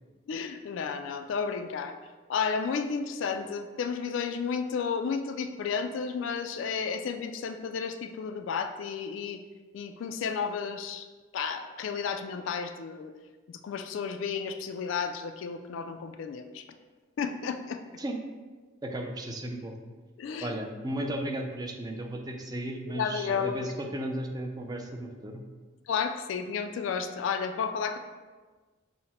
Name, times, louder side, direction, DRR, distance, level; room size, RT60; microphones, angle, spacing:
voice 1, 0.3-2.0 2.3-9.4 9.7-11.1 11.3-13.1 13.5-16.6 17.2-17.8 20.2-20.5 22.9-23.8 25.9-28.0, left 6 dB, 70° left, 7 dB, 0.3 m, -32 dB
voice 2, 18.8-19.8 20.4-25.4, right 1 dB, 20° right, 3 dB, 0.4 m, -35 dB
5.7 x 2.1 x 4.2 m, 1.3 s
head